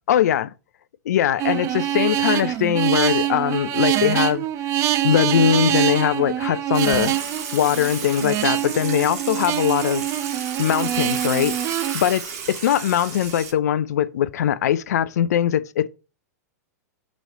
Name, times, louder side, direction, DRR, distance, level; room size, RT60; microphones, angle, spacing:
voice 1, 0.1-0.5 1.1-4.5 5.0-7.1 7.5-10.0 10.6-11.6 11.9-15.9, left 10 dB, 70° left, 0.4 m, -21 dB
sound 1, 1.4-11.9, right 13 dB, 35° right, 0.5 m, -24 dB
Water / Water tap faucet / Sink (filling or washing), 6.7-13.5, right 6 dB, 60° right, 1.6 m, -32 dB
6.3 x 3.1 x 5.3 m
hypercardioid pair, 110°, 9 cm